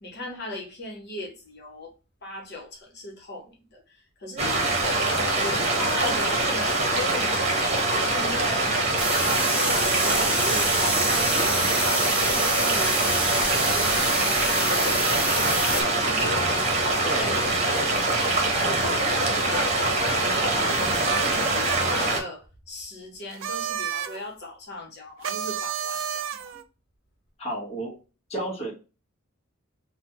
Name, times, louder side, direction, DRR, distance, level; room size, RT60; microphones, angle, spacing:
voice 1, 0.0-1.9 2.2-4.6 4.9-8.7 8.9-17.8 18.1-18.3 18.6-26.6, left 1 dB, 55° left, 1.1 m, -38 dB
sound 1, 4.4-22.2, right 2 dB, 35° right, 1.0 m, -24 dB
sound 2, 9.0-15.8, right 2 dB, 5° right, 1.0 m, -27 dB
voice 2, 17.0-17.4 27.4-27.9 28.3-28.7, right 1 dB, 30° left, 1.1 m, -31 dB
sound 3, 20.7-22.1 23.3-24.2 25.2-26.6, right 8 dB, 65° right, 0.4 m, -32 dB
4.0 x 2.3 x 3.0 m
head